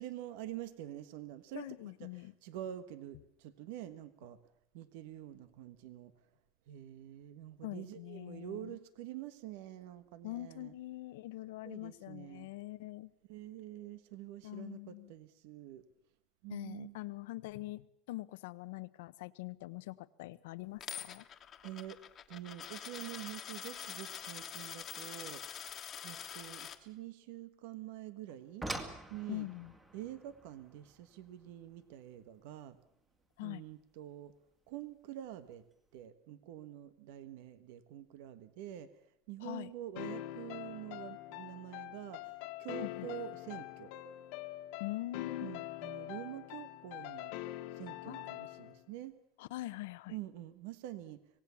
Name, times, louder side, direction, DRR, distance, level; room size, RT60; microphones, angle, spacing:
voice 1, 0.0-4.4 4.7-6.1 6.7-10.7 11.6-12.5 13.3-15.8 16.4-17.0 21.6-22.0 22.3-25.4 26.0-28.7 29.1-29.5 29.9-32.8 33.4-34.3 34.7-35.6 35.9-38.9 39.3-43.9 45.4-47.3 47.7-49.1 50.1-51.2, right 12 dB, 75° right, 12 dB, 1.4 m, -46 dB
voice 2, 1.5-2.3 7.6-8.8 10.2-13.1 14.4-15.1 16.5-21.2 29.3-29.7 33.4-33.6 39.4-39.7 42.8-43.1 44.8-45.5 48.1-48.2 49.4-50.1, left 17 dB, 85° left, 15 dB, 0.9 m, -43 dB
Coin (dropping), 20.8-26.8, left 9 dB, 30° left, 1.5 m, -45 dB
sound 1, 28.3-33.3 34.7-34.8 35.4-35.7 36.0-36.1, right 1 dB, 10° right, 2.3 m, -47 dB
sound 2, 40.0-48.8, left 16 dB, 65° left, 1.5 m, -44 dB
25.5 x 18.0 x 7.1 m, 0.73 s
supercardioid pair, 145°, 0 cm